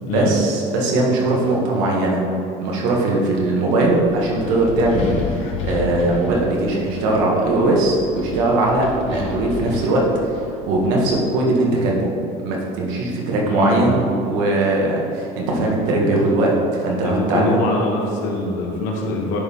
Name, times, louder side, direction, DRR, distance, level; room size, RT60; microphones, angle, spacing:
voice 1, 0.0-2.2 2.6-10.0 10.7-12.1 12.4-17.6, right 2 dB, 75° right, -2 dB, 1.7 m, -20 dB
Wind, 3.8-11.1, left 4 dB, 45° left, 0.9 m, -32 dB
voice 2, 13.4-13.9 17.0-19.4, left 2 dB, 60° left, -1 dB, 1.4 m, -23 dB
10.5 x 4.4 x 3.7 m, 2.6 s
cardioid pair, 175°, 15 cm